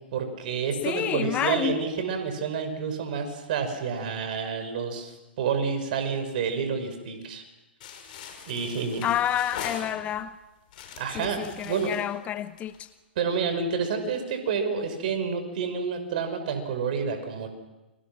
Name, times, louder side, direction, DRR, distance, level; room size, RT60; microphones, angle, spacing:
voice 1, 0.0-7.4 8.5-9.0 11.0-11.9 13.2-17.5, right 5 dB, 50° right, 5.8 m, -29 dB
voice 2, 0.8-1.8 9.0-10.3 11.1-12.9, left 11 dB, 25° left, 0.9 m, -29 dB
sound 1, 7.8-10.3 10.7-12.9, left 7 dB, 50° left, 6.2 m, -41 dB
29.0 x 25.0 x 6.1 m
figure-of-eight pair, 115°, 6 cm